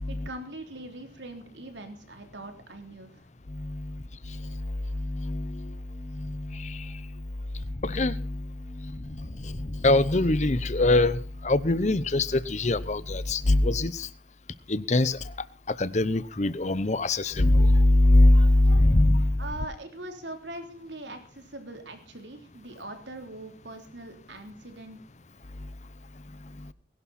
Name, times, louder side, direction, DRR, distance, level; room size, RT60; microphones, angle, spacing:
voice 1, 0.1-3.1 19.4-25.0, right 1 dB, 85° right, 3.5 m, -41 dB
voice 2, 3.5-4.0 4.3-4.6 4.9-7.0 7.8-14.1 14.7-15.2 15.8-19.4, left 2 dB, 40° left, 0.8 m, -23 dB
21.0 x 11.5 x 4.3 m
head